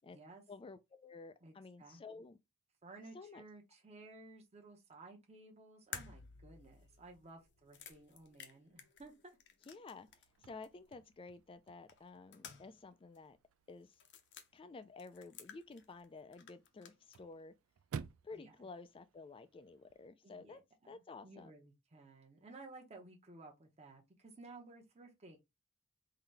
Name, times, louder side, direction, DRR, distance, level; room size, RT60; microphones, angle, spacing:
voice 1, 0.5-2.4 3.1-3.4 9.7-13.4 13.7-14.0 14.5-17.6 18.2-21.5, left 3 dB, 25° left, 0.3 m, -52 dB
voice 2, 1.4-2.2 2.8-9.1 18.3-18.5 20.2-25.4, right 3 dB, 30° right, 0.9 m, -56 dB
sound 1, 5.9-10.4 10.6-10.7 11.9-12.9 13.1-13.2 13.9-14.5 15.0-16.1 16.3-17.2, left 8 dB, 55° left, 0.7 m, -53 dB
Chirp tweet / Car / Slam, 10.1-20.1, right 6 dB, 65° right, 0.4 m, -54 dB
3.9 x 2.7 x 3.3 m
head